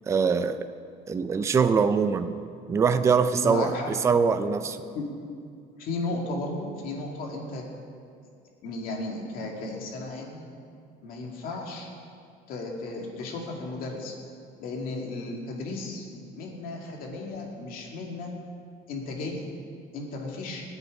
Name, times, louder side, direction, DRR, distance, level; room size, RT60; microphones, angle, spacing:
voice 1, 0.1-0.7 1.1-2.3 2.7-4.8, right 5 dB, 15° right, 10 dB, 0.4 m, -23 dB
voice 2, 3.3-3.9 5.0-5.1 5.8-7.6 8.6-10.5 11.0-11.9 12.5-14.1 14.6-18.3 18.9-19.4 19.9-20.6, left 2 dB, 60° left, 0 dB, 2.2 m, -34 dB
20.5 x 8.1 x 4.9 m, 2.3 s
cardioid pair, 175°, 17 cm